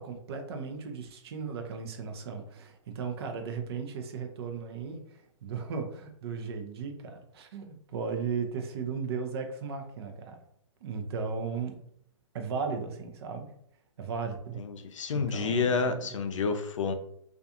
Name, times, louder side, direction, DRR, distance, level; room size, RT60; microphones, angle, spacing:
voice 1, 0.0-10.4 10.8-11.8 12.3-13.5 14.0-14.6 15.1-16.0, right 5 dB, 55° right, 5 dB, 0.5 m, -36 dB
voice 2, 14.6-16.9, left 5 dB, 75° left, 8 dB, 0.5 m, -29 dB
2.4 x 2.3 x 2.7 m, 0.71 s
hypercardioid pair, 135°, 16 cm